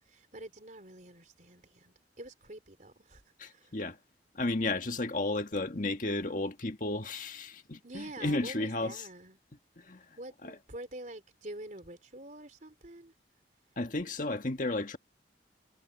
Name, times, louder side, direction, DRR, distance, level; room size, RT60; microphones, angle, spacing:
voice 1, 0.1-3.2 3.5-3.8 7.8-9.4 10.2-13.1, right 1 dB, 45° right, 3.7 m, -46 dB
voice 2, 3.4-4.0 4.3-9.0 9.8-10.0 10.4-10.5 13.8-15.0, left 2 dB, 45° left, 1.7 m, -33 dB
head